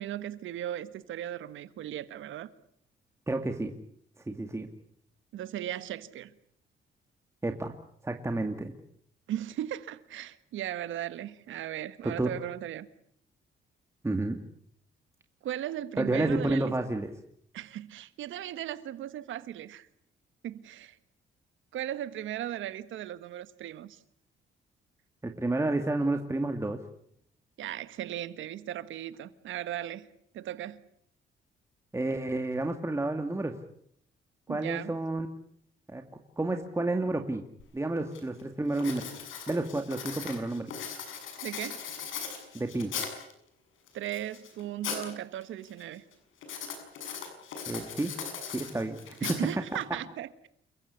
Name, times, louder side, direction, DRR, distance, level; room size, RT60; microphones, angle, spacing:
voice 1, 0.0-2.5 5.3-6.3 9.3-12.9 15.4-16.7 17.5-19.9 20.4-21.0 21.7-24.0 27.6-30.1 30.3-30.8 34.5-34.9 41.4-41.8 43.9-46.0 49.2-50.5, right 12 dB, 80° right, 1.6 m, -37 dB
voice 2, 3.3-3.7 4.3-4.7 7.4-7.7 8.0-8.7 12.0-12.3 14.0-14.4 16.0-17.1 25.2-26.8 31.9-33.6 34.5-35.3 35.9-36.0 36.4-37.4 37.7-39.1 39.5-40.7 42.5-42.9 47.7-48.1 48.5-49.0 49.7-49.8, right 2 dB, 15° right, 2.3 m, -30 dB
Writing, 37.6-37.7 38.1-38.4 38.7-43.3 43.9-45.1 45.4-45.8 46.4-49.8, left 7 dB, 80° left, 7.0 m, -39 dB
29.0 x 15.0 x 9.7 m
cardioid pair, 90°, 20 cm